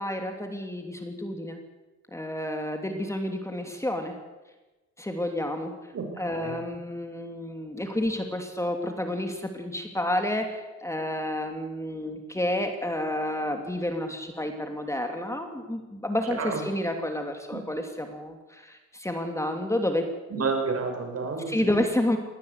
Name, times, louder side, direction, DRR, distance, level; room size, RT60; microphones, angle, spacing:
voice 1, 0.0-1.6 2.1-4.2 5.0-5.7 6.2-20.1 21.5-22.2, left 1 dB, 10° left, 4 dB, 2.8 m, -30 dB
voice 2, 5.9-6.5 16.4-16.6 20.3-21.8, right 4 dB, 50° right, 4 dB, 5.8 m, -30 dB
20.5 x 18.0 x 8.2 m, 1.2 s
cardioid pair, 90°, 30 cm